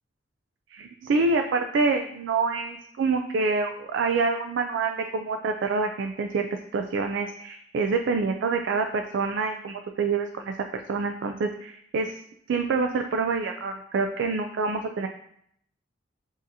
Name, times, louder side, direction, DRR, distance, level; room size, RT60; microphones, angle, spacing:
voice 1, 0.7-6.5 6.7-12.2 12.5-15.1, right 4 dB, 70° right, 5 dB, 0.3 m, -26 dB
7.2 x 2.7 x 2.7 m, 0.71 s
head